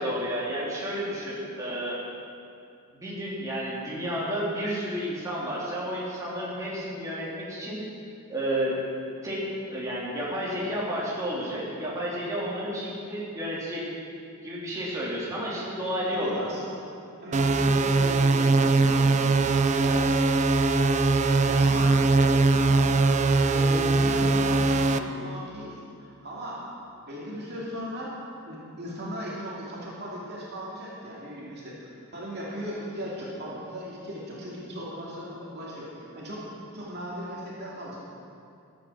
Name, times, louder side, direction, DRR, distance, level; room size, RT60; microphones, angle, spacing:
voice 1, 0.0-2.1 2.9-7.8 8.3-8.8 9.2-13.8 14.4-16.5, equal, 15° right, -8 dB, 3.0 m, -31 dB
voice 2, 16.0-16.7 17.2-20.1 20.7-26.6 26.9-28.2 28.4-38.0, equal, 45° right, -6 dB, 2.5 m, -38 dB
sound 1, 17.3-25.0, right 3 dB, 30° right, 0.4 m, -21 dB
13.5 x 8.6 x 7.2 m, 2.5 s
head